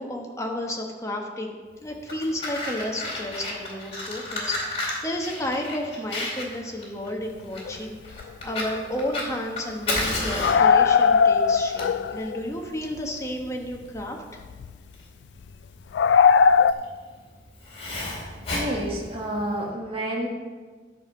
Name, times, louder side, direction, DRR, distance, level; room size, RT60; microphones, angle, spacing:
voice 1, 0.0-14.4, left 1 dB, 15° left, 1 dB, 1.2 m, -32 dB
Fire, 1.9-19.6, left 2 dB, 35° left, 2.3 m, -33 dB
sound 1, 7.7-7.8 8.2-8.3 8.5-8.6 10.4-12.4 13.0-13.1 14.4-14.7 15.9-16.7, left 6 dB, 85° left, 0.3 m, -18 dB
voice 2, 18.5-20.3, right 1 dB, 30° right, -2 dB, 1.3 m, -29 dB
10.0 x 5.3 x 6.8 m, 1.5 s
head